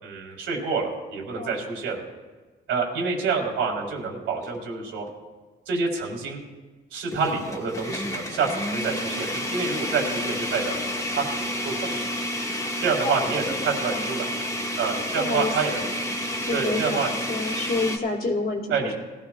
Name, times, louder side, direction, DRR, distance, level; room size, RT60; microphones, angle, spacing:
voice 1, 0.0-2.0 2.7-5.0 5.7-6.4 6.9-12.1 12.8-14.3 14.8-15.9 16.5-17.2 18.7-18.9, right 5 dB, 85° right, -1 dB, 4.3 m, -27 dB
sound 1, 4.4-4.6 5.1-5.2 7.1-18.0, left 1 dB, 15° left, 2.0 m, -30 dB
voice 2, 13.0-13.6 13.9-14.0 15.1-15.5 16.5-18.9, left 3 dB, 50° left, -1 dB, 2.9 m, -29 dB
20.5 x 15.0 x 2.5 m, 1.3 s
cardioid pair, 90°, 20 cm